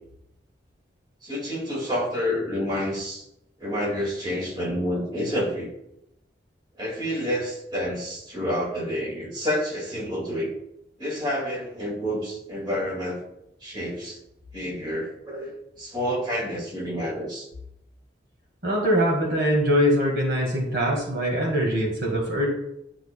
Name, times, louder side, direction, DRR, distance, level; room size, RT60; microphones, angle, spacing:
voice 1, 1.2-3.2 3.6-5.7 6.8-10.5 11.0-13.2 13.6-14.2 14.5-17.5, equal, 25° right, -4 dB, 2.1 m, -29 dB
voice 2, 18.6-22.5, equal, 65° right, -1 dB, 1.8 m, -23 dB
9.2 x 5.9 x 2.3 m, 0.81 s
head